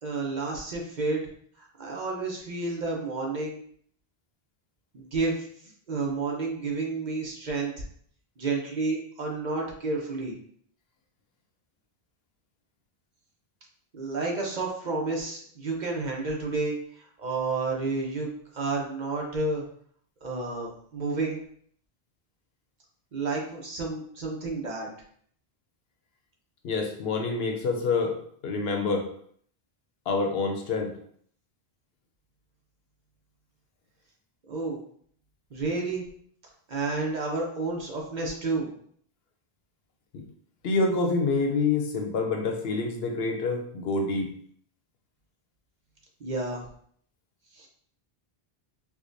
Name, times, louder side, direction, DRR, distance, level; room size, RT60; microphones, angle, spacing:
voice 1, 0.0-1.2 1.6-3.6 4.9-7.8 8.4-10.3 13.9-18.3 18.5-19.6 20.2-21.4 23.1-24.9 34.5-34.8 35.5-36.0 36.7-38.7 46.2-46.6 47.5-47.7, right 3 dB, 50° right, -1 dB, 0.8 m, -30 dB
voice 2, 26.6-28.1 28.4-29.0 30.1-30.9 40.1-40.2 40.6-44.3, left 3 dB, 75° left, 3 dB, 0.8 m, -27 dB
4.6 x 2.2 x 2.6 m, 0.62 s
omnidirectional pair, 1.0 m